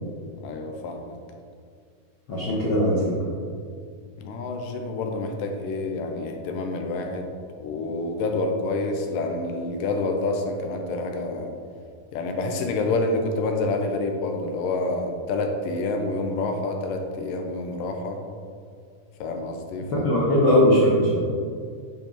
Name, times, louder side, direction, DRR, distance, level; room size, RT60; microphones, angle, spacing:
voice 1, 0.4-1.1 4.2-7.3 7.6-11.5 12.1-18.2 19.2-20.3, left 2 dB, 85° left, 4 dB, 2.4 m, -28 dB
voice 2, 2.3-3.1 19.9-21.2, equal, 60° left, -7 dB, 1.3 m, -19 dB
10.0 x 4.6 x 3.0 m, 2.2 s
omnidirectional pair, 3.9 m